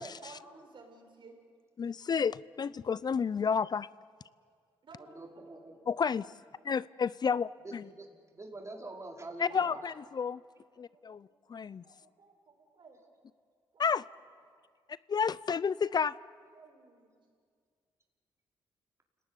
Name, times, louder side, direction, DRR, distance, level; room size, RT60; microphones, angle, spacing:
voice 1, 0.2-1.4 2.0-2.2 4.8-5.6 9.5-9.9 10.7-11.2 11.6-13.0 13.7-13.8 14.2-14.3 16.5-17.1, right 4 dB, 55° right, 2 dB, 7.5 m, -54 dB
voice 2, 1.8-3.9 5.9-6.3 6.6-7.8 9.4-10.4 10.8-11.2 11.5-11.8 13.8-14.1 15.1-16.1, left 6 dB, 45° left, 19 dB, 0.6 m, -31 dB
voice 3, 5.0-5.7 7.6-9.7, right 2 dB, 30° right, 1 dB, 5.1 m, -45 dB
29.0 x 18.5 x 10.0 m, 2.1 s
supercardioid pair, 55°, 10 cm